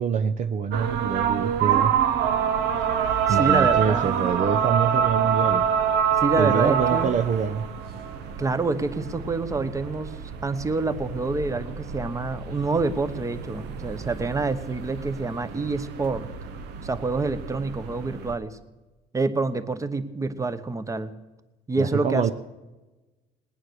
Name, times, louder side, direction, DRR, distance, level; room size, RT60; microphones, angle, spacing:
voice 1, 0.0-2.0 3.3-5.7 6.4-7.7 21.8-22.3, right 7 dB, 45° right, 8 dB, 0.7 m, -25 dB
sound 1, 0.7-18.3, right 8 dB, 80° right, 1.1 m, -27 dB
voice 2, 3.3-4.1 6.2-7.1 8.4-16.3 16.8-18.6 19.1-21.1 21.7-22.3, right 3 dB, 20° right, 11 dB, 1.0 m, -27 dB
19.5 x 9.5 x 6.4 m, 1.1 s
cardioid pair, 110°, 17 cm